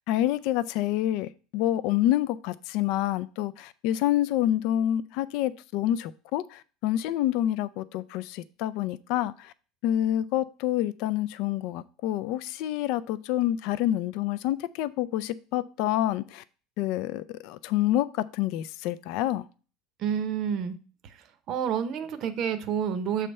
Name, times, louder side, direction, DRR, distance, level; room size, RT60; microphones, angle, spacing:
voice 1, 0.1-9.5 9.8-16.4 16.8-19.4, left 13 dB, 50° left, 0.4 m, -27 dB
voice 2, 20.0-20.8 21.5-23.3, right 8 dB, 35° right, 0.7 m, -28 dB
7.5 x 3.3 x 5.3 m
cardioid pair, 175°, 0 cm